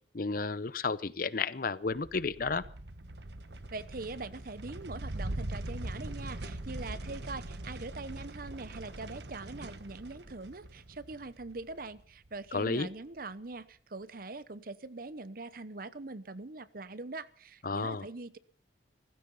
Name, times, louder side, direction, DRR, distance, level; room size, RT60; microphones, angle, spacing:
voice 1, 0.1-2.6 12.5-12.9 17.6-18.1, left 4 dB, 50° left, 17 dB, 0.7 m, -32 dB
sound 1, 2.0-12.5, right 1 dB, 70° right, 1.3 m, -42 dB
voice 2, 3.7-18.4, right 3 dB, 50° right, 15 dB, 0.9 m, -43 dB
17.5 x 15.0 x 5.5 m, 0.44 s
head